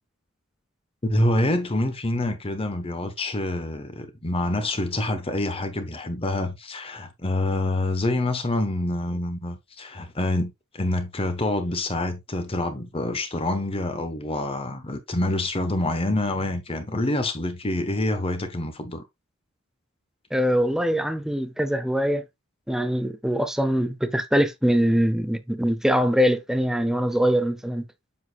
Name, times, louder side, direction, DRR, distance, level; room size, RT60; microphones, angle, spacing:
voice 1, 1.0-19.0, left 1 dB, 25° left, 1.0 m, -26 dB
voice 2, 20.3-22.2 22.7-27.9, equal, ahead, 0.6 m, -23 dB
7.3 x 6.3 x 2.3 m
head